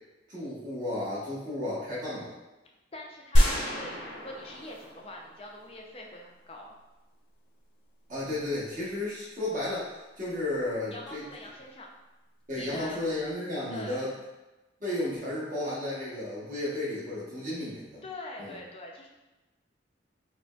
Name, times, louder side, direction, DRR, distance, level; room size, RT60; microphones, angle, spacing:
voice 1, 0.3-2.3 8.1-11.3 12.5-14.1 14.8-18.0 18.4-18.6, left 1 dB, 40° right, -8 dB, 1.1 m, -33 dB
voice 2, 2.9-6.7 10.9-11.9 12.5-13.0 13.7-14.2 18.0-19.1, left 2 dB, 30° left, -1 dB, 0.5 m, -43 dB
sound 1, 3.4-5.7, equal, 80° left, 0.8 m, -26 dB
4.9 x 2.1 x 2.3 m, 1.1 s
head